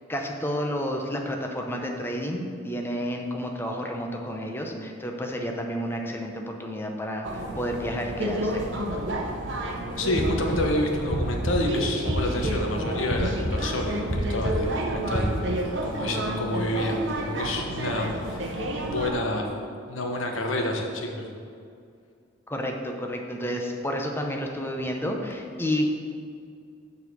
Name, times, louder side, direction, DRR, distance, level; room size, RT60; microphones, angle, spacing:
voice 1, 0.1-8.6 22.5-25.9, equal, 10° left, 2 dB, 0.7 m, -30 dB
sound 1, 7.2-19.1, right 1 dB, 60° right, 0.9 m, -31 dB
voice 2, 10.0-15.3 15.8-19.4 19.9-21.3, left 1 dB, 75° left, 2 dB, 1.1 m, -29 dB
sound 2, 10.0-15.2, equal, 35° right, 0.9 m, -30 dB
7.4 x 4.2 x 6.8 m, 2.3 s
head